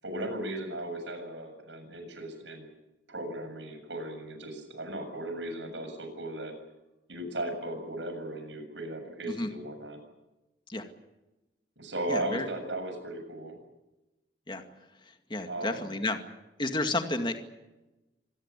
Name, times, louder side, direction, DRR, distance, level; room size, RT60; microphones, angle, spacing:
voice 1, 0.0-2.7 3.1-6.5 7.1-10.0 11.8-13.6 15.5-15.9, right 1 dB, 90° right, 7 dB, 7.3 m, -36 dB
voice 2, 12.1-12.4 14.5-14.6 15.0-16.2 16.6-17.4, left 2 dB, 25° left, 6 dB, 2.2 m, -31 dB
26.0 x 19.0 x 8.3 m, 1.0 s
head